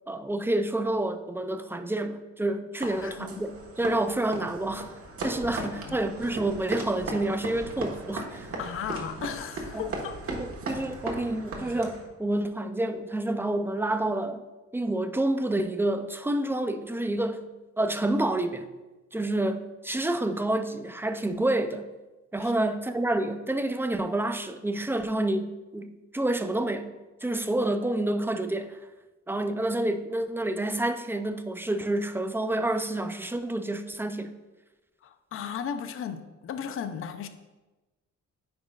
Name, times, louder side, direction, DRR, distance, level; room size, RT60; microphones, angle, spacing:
voice 1, 0.1-4.9 5.2-8.5 9.7-9.8 10.3-14.4 14.7-17.5 17.8-18.7 19.1-21.9 22.3-28.8 29.3-34.3, right 1 dB, 10° right, 8 dB, 0.4 m, -28 dB
voice 2, 2.8-3.3 5.6-6.0 8.6-10.2 22.4-22.5 35.0-37.3, left 7 dB, 45° left, 9 dB, 0.5 m, -36 dB
sound 1, 2.8-12.1, right 2 dB, 50° right, 1.4 m, -37 dB
9.5 x 5.2 x 2.4 m, 1.1 s
cardioid pair, 90°, 30 cm